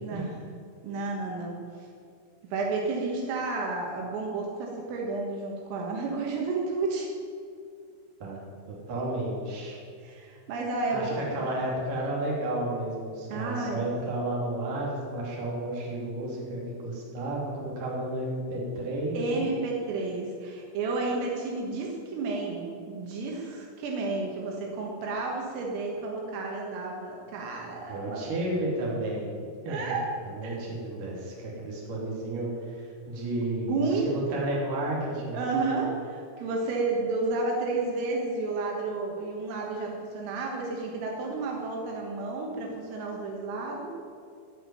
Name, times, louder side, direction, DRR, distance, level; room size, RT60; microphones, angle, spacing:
voice 1, 0.0-0.4 0.8-1.9 2.5-7.1 10.0-11.5 13.3-13.8 19.2-28.3 29.7-30.0 30.4-30.6 33.7-34.1 35.3-43.9, right 3 dB, 80° right, -1 dB, 4.1 m, -31 dB
voice 2, 8.2-9.8 10.9-19.5 27.9-29.3 29.6-30.0 30.3-35.7, right 1 dB, 45° right, -4 dB, 4.3 m, -32 dB
17.5 x 6.2 x 9.6 m, 2.3 s
omnidirectional pair, 6.0 m